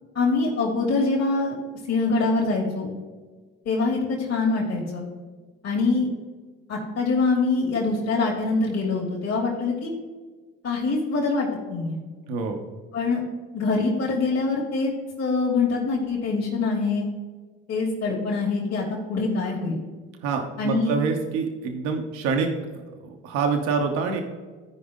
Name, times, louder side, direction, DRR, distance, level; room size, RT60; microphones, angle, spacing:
voice 1, 0.1-1.6 1.9-2.9 3.6-5.0 5.6-6.1 6.7-9.9 10.6-12.0 12.9-13.2 13.5-14.9 15.2-17.0 17.7-19.8 20.6-21.0, left 3 dB, 55° left, -3 dB, 2.6 m, -24 dB
voice 2, 12.3-12.6 20.2-24.2, right 5 dB, 85° right, 3 dB, 1.0 m, -26 dB
13.5 x 5.0 x 3.7 m, 1.4 s
supercardioid pair, 65°, 30 cm